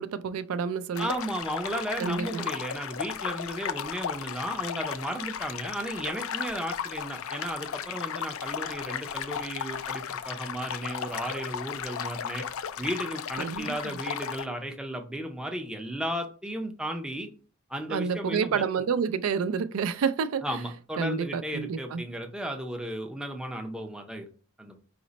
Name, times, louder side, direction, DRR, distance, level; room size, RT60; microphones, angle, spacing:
voice 1, 0.0-1.1 2.0-2.5 13.4-14.0 17.9-20.4 21.0-22.0, right 6 dB, 80° right, 0.3 m, -29 dB
sound 1, 0.9-14.5, left 8 dB, 75° left, 0.4 m, -35 dB
voice 2, 1.0-12.5 12.8-17.3 17.7-18.6 20.4-24.3 24.6-24.8, right 1 dB, 5° right, 0.5 m, -34 dB
4.9 x 2.1 x 4.0 m
head